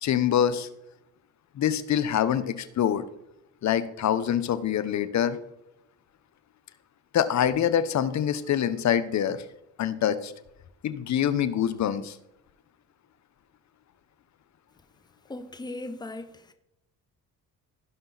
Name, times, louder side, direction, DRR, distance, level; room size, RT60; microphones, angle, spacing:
voice 1, 0.0-0.7 1.5-3.0 3.6-5.4 7.1-9.4 9.8-10.3 10.8-12.2, left 9 dB, 50° left, 1.0 m, -25 dB
voice 2, 15.3-16.5, left 2 dB, 10° left, 1.1 m, -38 dB
16.5 x 5.5 x 4.0 m
cardioid pair, 90°, 35 cm